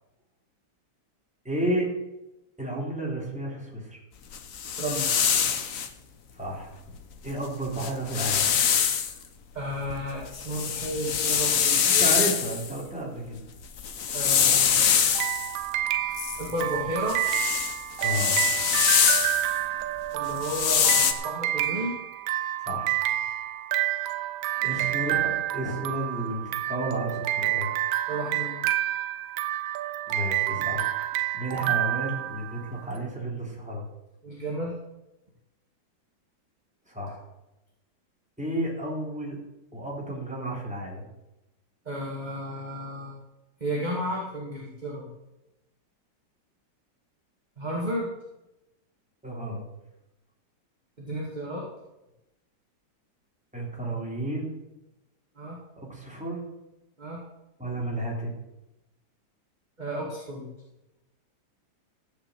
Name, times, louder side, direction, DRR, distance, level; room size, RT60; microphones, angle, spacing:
voice 1, 1.4-1.9 2.6-4.0 6.3-6.8 7.2-8.5 12.0-13.4 18.0-18.4 22.6-23.0 24.6-27.7 30.1-30.9 31.3-33.9 36.9-37.2 38.4-39.4 39.7-41.1 49.2-49.6 53.5-54.5 55.8-56.4 57.6-58.4, right 1 dB, 5° right, -3 dB, 3.4 m, -32 dB
sound 1, 4.3-5.9 7.3-7.4 7.7-9.1 9.7-12.7 13.6-15.5 16.2-19.5 20.3-21.1, left 7 dB, 55° left, 1.1 m, -24 dB
voice 2, 9.5-12.1 14.1-14.9 16.4-17.2 20.1-21.9 24.6-24.9 28.1-28.6 34.2-34.7 41.9-43.2 43.6-45.1 47.6-48.1 51.0-51.7 55.4-55.6 57.0-57.2 59.8-60.5, equal, 20° right, -3 dB, 2.1 m, -33 dB
sound 2, 15.2-32.8, right 14 dB, 85° right, 1.4 m, -29 dB
14.5 x 5.9 x 8.0 m, 0.96 s
omnidirectional pair, 2.1 m